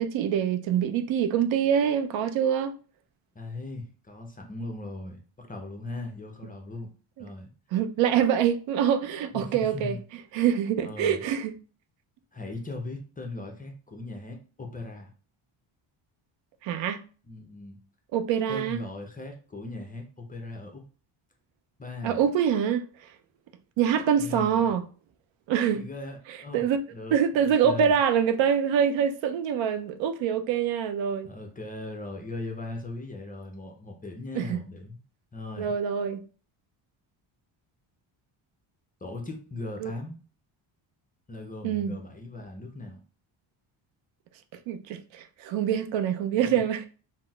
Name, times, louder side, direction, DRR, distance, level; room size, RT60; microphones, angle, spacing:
voice 1, 0.0-2.7 7.2-7.3 7.7-10.0 10.3-11.5 16.6-17.0 18.1-18.8 22.0-22.8 23.8-24.8 25.5-25.8 26.3-26.8 27.1-31.3 34.4-34.6 35.6-36.2 39.8-39.9 41.6-41.9 44.7-46.8, right 8 dB, 70° right, 0.5 m, -25 dB
voice 2, 3.3-6.9 7.2-7.5 9.3-10.0 10.8-11.2 12.3-15.1 17.2-17.8 18.5-20.8 21.8-22.3 24.2-24.7 25.7-28.0 31.2-35.0 35.3-35.7 39.0-40.2 41.3-43.0 46.4-46.6, left 2 dB, 20° left, 0.5 m, -39 dB
3.8 x 2.0 x 2.2 m
cardioid pair, 100°, 48 cm